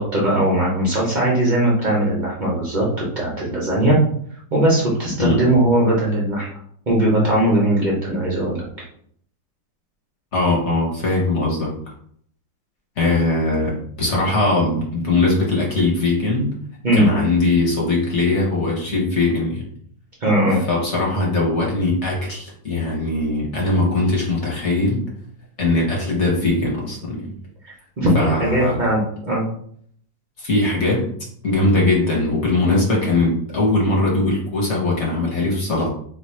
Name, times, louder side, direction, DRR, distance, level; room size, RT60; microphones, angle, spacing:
voice 1, 0.0-4.0 4.5-6.5 6.9-8.6 16.8-17.1 20.2-20.6 27.6-29.4, right 1 dB, 75° right, -5 dB, 0.4 m, -19 dB
voice 2, 10.3-11.7 13.0-16.5 16.9-19.7 20.7-25.0 25.6-27.3 28.1-28.8 30.4-31.1 31.4-35.9, left 2 dB, 50° left, -3 dB, 0.9 m, -20 dB
2.8 x 2.3 x 4.2 m, 0.63 s
omnidirectional pair, 2.0 m